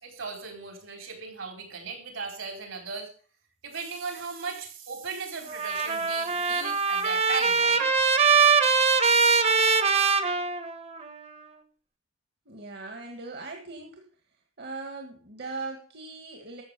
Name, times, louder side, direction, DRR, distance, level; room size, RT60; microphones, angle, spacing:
voice 1, 0.0-3.1 3.6-7.9, right 4 dB, 70° right, 3 dB, 4.6 m, -37 dB
Trumpet, 5.5-11.1, right 5 dB, 30° right, 1.1 m, -22 dB
voice 2, 12.5-14.0 14.6-16.6, right 3 dB, 50° right, 3 dB, 1.8 m, -39 dB
13.0 x 7.5 x 6.8 m, 0.41 s
head